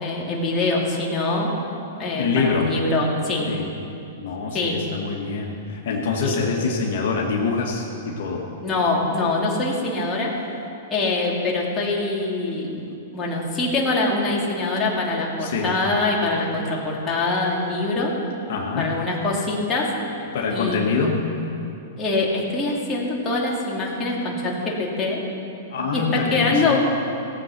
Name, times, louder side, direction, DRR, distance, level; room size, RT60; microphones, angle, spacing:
voice 1, 0.0-1.5 2.0-3.5 4.5-4.8 6.2-6.4 8.6-10.4 10.9-12.8 13.1-18.1 18.8-19.9 20.5-20.8 22.0-25.2 25.9-26.8, left 2 dB, 20° left, -4 dB, 2.7 m, -24 dB
voice 2, 2.1-2.7 3.5-3.7 4.2-8.5 15.4-15.7 18.5-18.9 20.3-21.2 25.7-26.8, left 4 dB, 65° left, -1 dB, 1.8 m, -25 dB
17.0 x 8.0 x 6.1 m, 2.7 s
hypercardioid pair, 125°, 0 cm